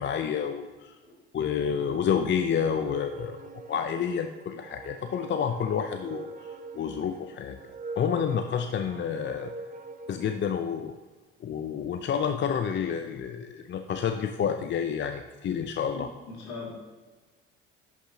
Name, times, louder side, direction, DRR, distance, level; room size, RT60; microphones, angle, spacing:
voice 1, 0.0-1.0 1.3-3.4 3.7-6.3 6.7-7.6 8.0-9.5 10.1-11.0 11.4-16.1, left 7 dB, 35° left, 7 dB, 0.6 m, -29 dB
sound 1, 2.4-10.6, right 3 dB, 25° right, 0.7 m, -43 dB
voice 2, 15.9-16.7, left 3 dB, 65° left, -2 dB, 2.6 m, -41 dB
11.0 x 6.1 x 2.8 m, 1.3 s
hypercardioid pair, 60°, 31 cm